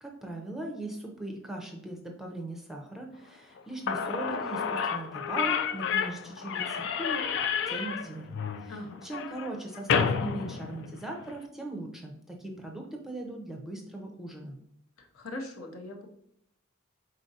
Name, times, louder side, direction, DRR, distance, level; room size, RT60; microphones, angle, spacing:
voice 1, 0.0-7.2 7.7-14.6, right 2 dB, ahead, 1 dB, 0.6 m, -39 dB
Slam / Squeak, 3.6-3.7 3.9-11.3, left 6 dB, 60° left, 0.3 m, -30 dB
voice 2, 8.7-9.0 15.0-16.1, left 2 dB, 75° left, 2 dB, 0.8 m, -40 dB
4.9 x 3.9 x 2.7 m, 0.74 s
head